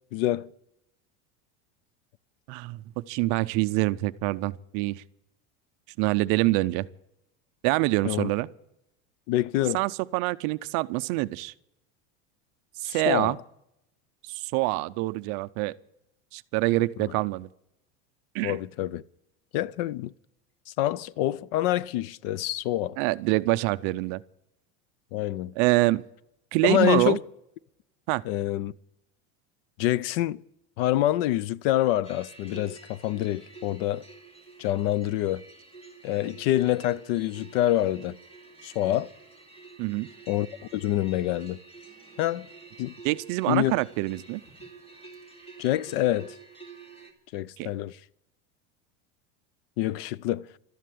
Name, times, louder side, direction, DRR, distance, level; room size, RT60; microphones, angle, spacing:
voice 1, 0.1-0.5 8.0-8.3 9.3-9.8 12.8-13.4 18.4-19.0 19.5-20.1 20.8-23.0 25.1-25.6 26.6-27.2 28.2-28.7 29.8-30.4 30.8-34.0 34.6-35.4 36.0-38.2 38.6-39.1 40.3-40.5 40.7-41.6 42.2-42.5 42.8-42.9 43.5-43.7 45.6-46.4 47.3-48.0 49.8-50.5, left 14 dB, 55° left, 0.5 m, -26 dB
voice 2, 2.5-5.0 6.0-6.9 7.6-8.5 9.7-11.5 12.8-13.4 14.3-15.7 16.3-17.5 18.3-18.6 23.0-24.2 25.6-26.0 26.5-27.2 28.1-28.2 39.8-40.1 43.0-44.4 47.6-47.7, right 20 dB, 45° right, 0.5 m, -25 dB
sound 1, 32.0-47.1, right 4 dB, 15° left, 2.6 m, -49 dB
13.0 x 11.0 x 8.4 m
cardioid pair, 175°, 34 cm